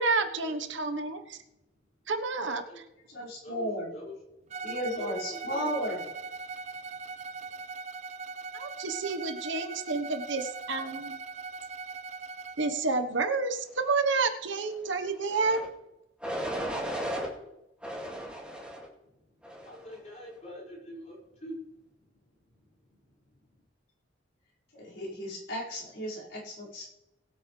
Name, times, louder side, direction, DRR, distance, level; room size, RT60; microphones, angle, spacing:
voice 1, 0.0-1.4 2.1-2.6 8.5-11.2 12.6-15.6, right 3 dB, 70° right, 7 dB, 1.1 m, -29 dB
voice 2, 2.4-2.8 3.4-4.1 5.0-5.9 19.3-21.6 22.6-23.0, equal, 35° left, -4 dB, 5.2 m, -45 dB
voice 3, 3.1-3.9 4.6-6.0 24.7-26.9, equal, 70° left, -6 dB, 5.2 m, -35 dB
Bowed string instrument, 4.5-12.8, right 4 dB, 35° right, 0.4 m, -40 dB
sound 1, 15.3-15.7 16.2-17.3 17.8-18.9 19.4-19.9, equal, 5° right, 2.2 m, -35 dB
21.0 x 8.6 x 3.3 m, 0.92 s
head